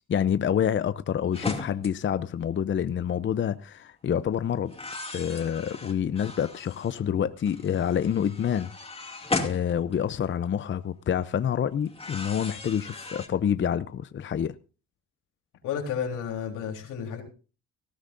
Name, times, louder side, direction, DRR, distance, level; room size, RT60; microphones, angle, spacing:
voice 1, 0.1-4.7 5.1-8.7 9.4-14.5, left 8 dB, 40° left, 0.6 m, -27 dB
sound 1, 1.3-1.9 2.8-3.1 4.7-7.0 7.4-10.5 11.9-13.3, left 3 dB, 20° left, 2.5 m, -36 dB
voice 2, 15.6-17.2, left 7 dB, 90° left, 3.7 m, -31 dB
18.5 x 13.5 x 2.6 m
cardioid pair, 90°, 30 cm